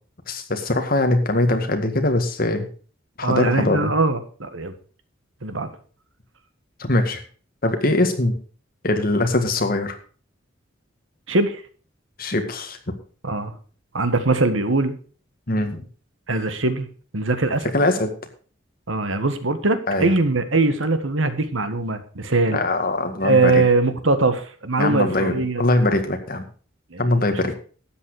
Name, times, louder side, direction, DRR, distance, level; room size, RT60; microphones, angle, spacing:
voice 1, 0.3-2.7 3.2-3.9 6.8-7.2 7.6-8.4 8.8-10.0 12.2-12.9 15.5-15.8 17.7-18.1 19.9-20.1 22.5-23.6 24.8-26.4 27.0-27.5, left 2 dB, 45° left, 6 dB, 2.0 m, -22 dB
voice 2, 3.2-4.7 5.4-5.7 11.3-11.6 13.2-13.5 13.9-15.0 16.3-16.9 17.1-17.7 18.9-22.6 23.2-25.6 26.9-27.0 27.3-27.6, right 3 dB, 80° right, 10 dB, 1.6 m, -21 dB
12.5 x 8.8 x 4.9 m, 0.40 s
head